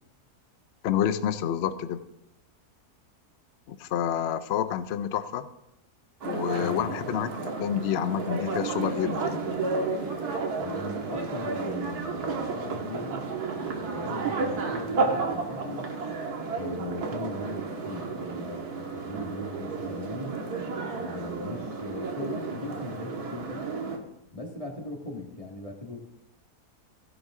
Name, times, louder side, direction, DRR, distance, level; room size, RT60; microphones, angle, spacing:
voice 1, 0.8-2.0 3.7-5.5 6.2-9.4, left 9 dB, 60° left, 12 dB, 0.7 m, -28 dB
sound 1, 6.2-24.0, right 4 dB, 80° right, 2.0 m, -32 dB
voice 2, 6.6-7.0 10.6-15.9 16.6-20.4 20.9-23.7 24.3-26.0, left 2 dB, 25° left, 1 dB, 1.8 m, -39 dB
15.5 x 10.5 x 3.7 m, 0.86 s
omnidirectional pair, 1.6 m